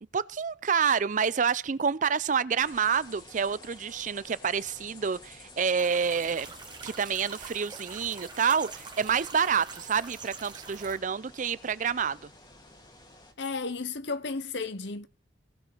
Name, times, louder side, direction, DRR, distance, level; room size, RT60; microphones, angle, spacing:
voice 1, 0.1-6.5 6.8-12.2, right 6 dB, 40° right, 0.5 m, -28 dB
sound 1, 2.6-13.3, left 2 dB, 25° left, 2.0 m, -51 dB
sound 2, 5.8-11.0, right 5 dB, 25° right, 1.5 m, -45 dB
voice 2, 13.4-15.1, left 4 dB, 65° left, 0.9 m, -33 dB
17.5 x 6.5 x 4.5 m
head